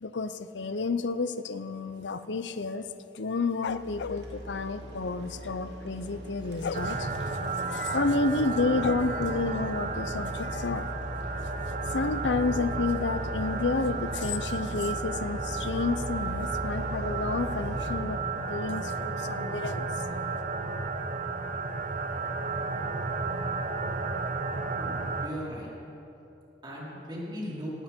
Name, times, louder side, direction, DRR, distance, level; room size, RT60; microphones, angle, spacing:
voice 1, 0.0-2.9 3.1-7.2 7.5-10.9 11.9-19.9, left 3 dB, 85° left, 11 dB, 0.7 m, -30 dB
sound 1, 3.6-4.3 6.6-6.9 8.8-9.0, left 7 dB, 65° left, 0.3 m, -33 dB
sound 2, 3.7-18.0, equal, 75° right, 2.8 m, -40 dB
sound 3, 6.7-25.3, right 3 dB, 50° right, 1.0 m, -33 dB
voice 2, 24.8-25.7 26.6-27.7, equal, 25° right, -6 dB, 4.6 m, -38 dB
18.0 x 17.0 x 4.5 m, 2.8 s
head